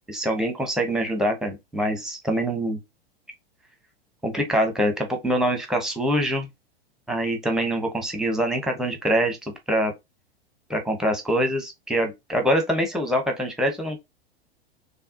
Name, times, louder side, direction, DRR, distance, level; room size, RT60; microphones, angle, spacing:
voice 1, 0.1-2.8 4.2-6.5 7.1-9.4 9.7-9.9 10.7-14.0, equal, ahead, 1.1 m, -24 dB
4.5 x 3.4 x 2.8 m
figure-of-eight pair, 95°, 32 cm